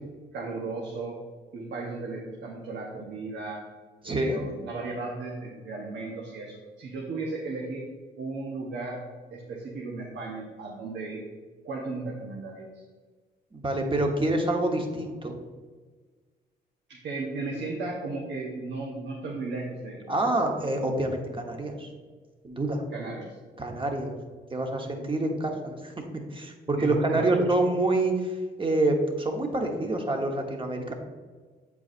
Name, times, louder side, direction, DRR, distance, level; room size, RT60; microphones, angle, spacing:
voice 1, 0.3-1.2 1.5-3.6 4.0-7.9 8.2-9.0 9.3-11.2 11.6-12.8 16.9-20.3 22.9-23.4 26.8-27.4, right 3 dB, 70° right, -2 dB, 1.1 m, -35 dB
voice 2, 4.0-4.4 13.5-15.3 20.1-21.9 22.4-22.8 23.6-24.2 24.5-30.9, right 2 dB, 25° right, 2 dB, 1.2 m, -27 dB
7.9 x 4.7 x 2.6 m, 1.4 s
supercardioid pair, 60°, 19 cm